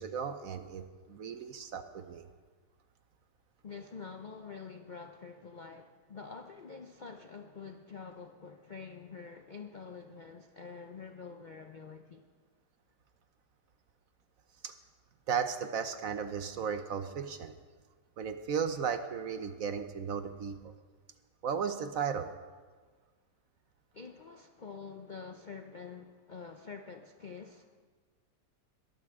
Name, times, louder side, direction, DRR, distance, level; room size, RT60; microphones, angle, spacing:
voice 1, 0.0-2.2 14.6-14.7 15.3-17.6 18.2-20.7 21.4-22.3, right 7 dB, 60° right, 9 dB, 1.1 m, -35 dB
voice 2, 3.6-12.3 23.9-27.9, left 5 dB, 90° left, 6 dB, 0.4 m, -47 dB
21.5 x 14.5 x 3.6 m, 1.4 s
omnidirectional pair, 1.9 m